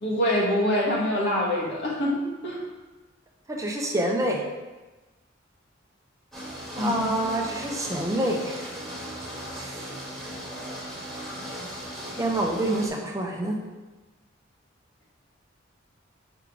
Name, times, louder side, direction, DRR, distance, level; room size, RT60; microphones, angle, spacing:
voice 1, 0.0-2.6 6.8-7.0, left 1 dB, 60° left, -4 dB, 1.6 m, -25 dB
voice 2, 3.5-4.4 6.8-8.6 9.5-9.8 12.2-13.6, right 1 dB, 15° right, 0 dB, 0.7 m, -27 dB
sound 1, 6.3-12.9, equal, ahead, 1.6 m, -37 dB
6.0 x 3.7 x 4.7 m, 1.2 s
head